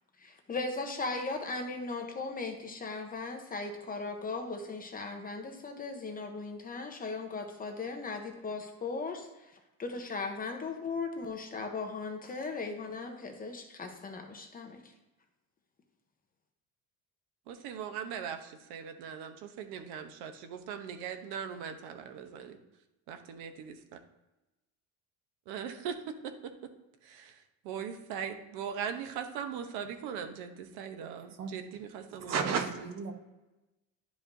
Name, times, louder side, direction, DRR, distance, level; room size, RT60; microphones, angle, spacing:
voice 1, 0.2-9.3 9.8-14.8, left 3 dB, 25° left, 4 dB, 0.8 m, -37 dB
voice 2, 17.5-22.6 23.1-23.5 25.5-26.3 27.1-27.3 27.6-32.3, right 7 dB, 85° right, 8 dB, 1.0 m, -40 dB
voice 3, 32.2-33.1, right 5 dB, 45° right, 5 dB, 1.1 m, -32 dB
11.5 x 4.9 x 2.7 m, 1.0 s
cardioid pair, 150°, 37 cm